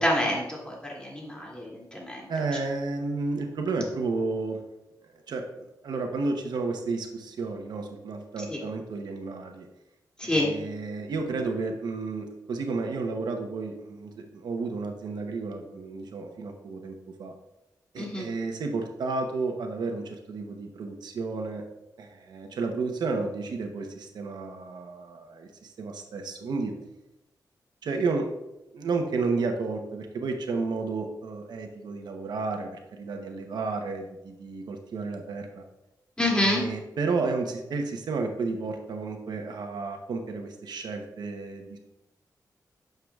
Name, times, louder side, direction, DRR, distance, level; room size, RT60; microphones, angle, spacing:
voice 1, 0.0-2.2 8.5-8.6 10.2-10.5 18.0-18.3 36.2-36.6, left 1 dB, 15° left, -3 dB, 2.5 m, -27 dB
voice 2, 2.3-4.6 5.3-9.7 10.2-17.3 17.9-21.6 22.0-26.7 27.8-28.3 28.7-35.6 36.2-41.8, right 3 dB, 85° right, 4 dB, 0.9 m, -32 dB
9.3 x 6.7 x 2.4 m, 0.93 s
cardioid pair, 90°, 7 cm